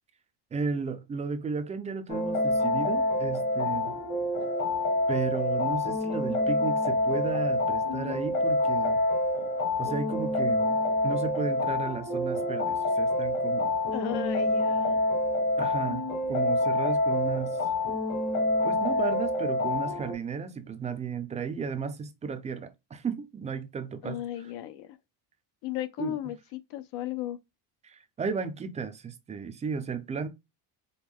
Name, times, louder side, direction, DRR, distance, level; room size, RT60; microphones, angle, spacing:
voice 1, 0.5-3.9 5.1-9.0 9.8-13.8 15.6-17.7 18.6-24.2 26.0-26.3 27.8-30.3, right 5 dB, 20° right, 0.3 m, -34 dB
sound 1, 2.1-20.1, left 2 dB, 45° left, 1.1 m, -27 dB
voice 2, 13.9-15.0 24.0-24.9 25.6-27.4, left 13 dB, 65° left, 0.5 m, -35 dB
5.0 x 2.2 x 3.5 m
cardioid pair, 150°, 43 cm